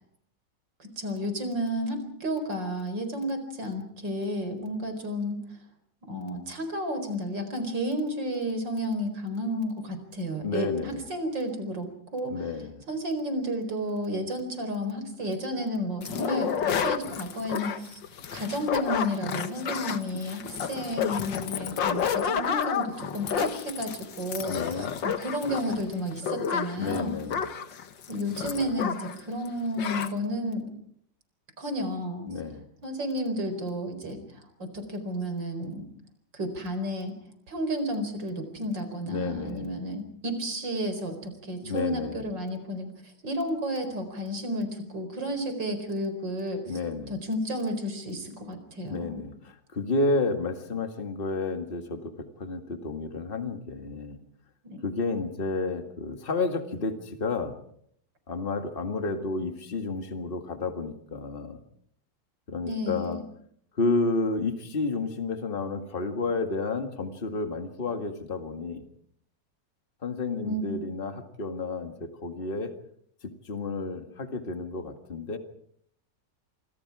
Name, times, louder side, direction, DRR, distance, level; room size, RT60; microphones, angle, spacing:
voice 1, 0.8-5.4 6.0-12.3 12.9-18.0 18.3-24.6 25.0-27.2 28.1-30.7 31.6-32.3 32.8-35.8 36.3-37.1 37.5-42.9 43.2-46.6 47.1-49.2 54.6-54.8 62.6-63.2 70.4-70.7, equal, 75° right, 8 dB, 5.1 m, -32 dB
voice 2, 10.4-11.0 12.3-12.8 24.5-24.9 26.7-27.5 32.3-32.6 39.0-39.8 41.6-42.3 46.7-47.2 48.8-54.2 54.8-57.6 58.3-61.6 62.5-63.2 63.8-68.8 70.0-72.7 73.2-75.4, left 3 dB, 30° left, 6 dB, 2.1 m, -31 dB
sound 1, 16.0-29.2 29.5-29.6 29.8-30.1, left 7 dB, 80° left, 2.0 m, -30 dB
27.5 x 25.0 x 4.9 m, 0.64 s
omnidirectional pair, 2.0 m